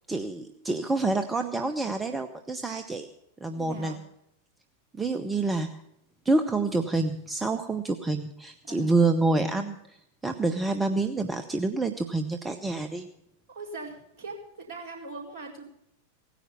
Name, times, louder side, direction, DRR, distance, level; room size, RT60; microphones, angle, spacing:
voice 1, 0.1-3.1 3.4-3.9 4.9-5.8 6.2-13.1, right 3 dB, 10° right, 8 dB, 0.8 m, -27 dB
voice 2, 3.5-4.0 8.6-8.9 13.5-15.7, right 3 dB, 40° right, -1 dB, 4.3 m, -40 dB
17.5 x 10.0 x 6.9 m, 0.78 s
figure-of-eight pair, 90°, 0 cm